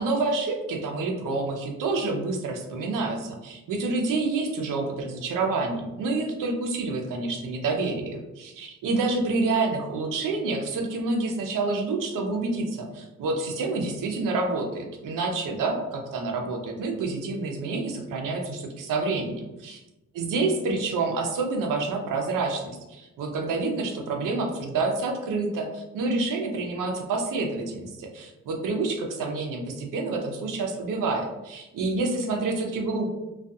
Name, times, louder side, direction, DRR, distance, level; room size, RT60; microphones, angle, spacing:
voice 1, 0.0-19.8 20.2-33.1, right 3 dB, 90° right, 3 dB, 0.6 m, -28 dB
2.6 x 2.3 x 2.3 m, 1.0 s
cardioid pair, 120°, 31 cm